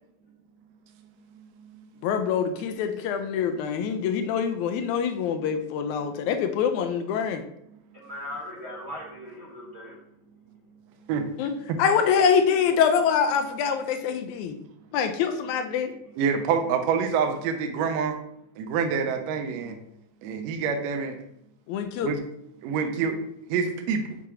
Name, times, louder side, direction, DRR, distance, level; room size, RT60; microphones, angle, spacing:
voice 1, 2.0-7.4 11.4-11.5 11.8-14.6 14.9-15.9 21.7-22.1, left 7 dB, 80° left, 7 dB, 2.0 m, -25 dB
voice 2, 7.9-10.0, left 1 dB, 55° right, -8 dB, 0.7 m, -38 dB
voice 3, 16.2-18.2 18.6-19.8 20.2-21.2 22.0-22.2 22.6-23.2 23.5-24.2, right 6 dB, 75° right, 6 dB, 1.7 m, -26 dB
6.8 x 2.9 x 4.7 m, 0.76 s
omnidirectional pair, 3.4 m